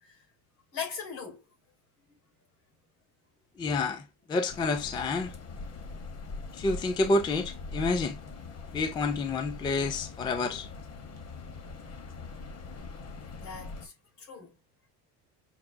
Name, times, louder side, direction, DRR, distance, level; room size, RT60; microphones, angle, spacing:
voice 1, 0.7-1.4 6.1-6.4 13.4-14.5, left 6 dB, 75° left, 2.8 m, -40 dB
voice 2, 3.6-5.3 6.5-8.2 8.7-10.7, left 3 dB, 10° left, 0.3 m, -29 dB
sound 1, 4.5-13.9, left 3 dB, 40° left, 0.9 m, -42 dB
6.0 x 2.2 x 2.5 m
cardioid pair, 120°, 41 cm